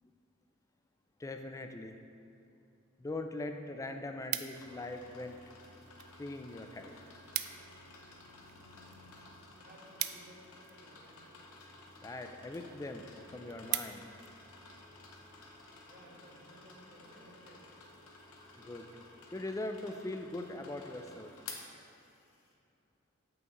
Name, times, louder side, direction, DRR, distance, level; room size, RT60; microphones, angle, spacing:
voice 1, 1.2-2.0 3.0-5.4 6.2-7.0 12.0-13.1 13.3-14.1 18.6-21.3, left 2 dB, 15° left, 6 dB, 0.3 m, -41 dB
sound 1, 3.1-3.2 3.5-4.9 5.6-6.1 6.4-6.5 6.8-6.9 7.1-7.8 8.1-11.0 11.7-12.0 12.5-12.6 13.0-13.1 13.3-14.3 14.8-15.0, right 14 dB, 85° right, 0.3 m, -40 dB
sound 2, 4.5-22.5, left 3 dB, 85° left, 0.8 m, -54 dB
voice 2, 8.4-11.3 15.8-17.7, right 1 dB, 50° right, -4 dB, 1.4 m, -59 dB
7.8 x 5.8 x 3.0 m, 2.5 s
head